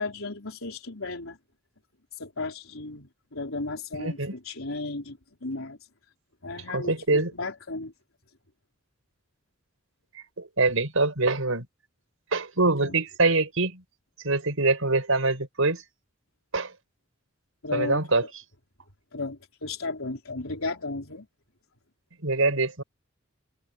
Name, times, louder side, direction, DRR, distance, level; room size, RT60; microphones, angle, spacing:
voice 1, 0.0-1.4 2.2-5.8 6.4-7.9 12.8-13.0 17.6-18.0 19.1-21.3, left 3 dB, 85° left, 4.4 m, -34 dB
voice 2, 4.0-4.3 6.7-7.3 10.4-11.7 12.3-13.8 14.2-15.8 16.5-16.7 17.7-18.2 22.2-22.8, right 3 dB, 90° right, 5.4 m, -24 dB
head